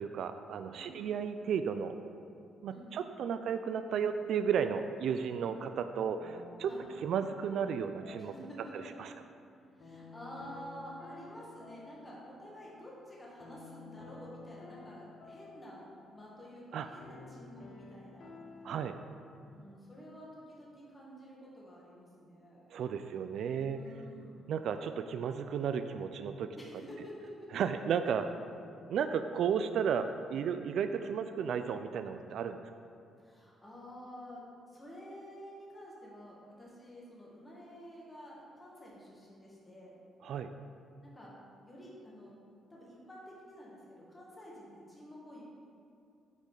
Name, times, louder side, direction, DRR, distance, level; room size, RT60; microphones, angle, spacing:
voice 1, 0.0-1.9 2.6-6.7 7.0-8.3 8.7-9.1 16.7-16.9 18.6-19.0 22.7-23.8 24.5-26.6 27.5-28.4 28.9-32.6 40.2-40.5, right 7 dB, 70° right, 9 dB, 0.3 m, -33 dB
voice 2, 2.7-3.2 5.4-5.6 6.6-6.8 8.2-8.9 9.8-18.4 19.4-22.7 23.6-24.6 26.5-27.5 33.2-40.0 41.0-41.3 41.6-42.3 42.7-45.4, equal, 20° left, -5 dB, 1.8 m, -50 dB
sound 1, 3.9-18.8, left 3 dB, 55° left, 1.0 m, -54 dB
8.4 x 5.2 x 3.9 m, 2.5 s
cardioid pair, 90°, 0 cm